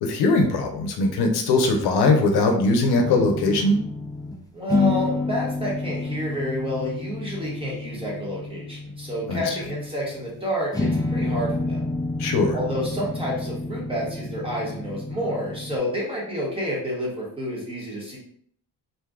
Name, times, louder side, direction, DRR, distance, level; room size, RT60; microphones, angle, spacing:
voice 1, 0.0-3.8 9.3-9.4 12.2-12.6, left 2 dB, 80° left, 3 dB, 0.7 m, -20 dB
sound 1, 3.0-4.4 4.7-10.4 10.7-15.8, left 2 dB, 10° left, 0.4 m, -29 dB
voice 2, 4.5-11.8 12.5-18.2, equal, 15° right, -5 dB, 1.1 m, -29 dB
2.6 x 2.3 x 3.5 m, 0.63 s
cardioid pair, 130°, 38 cm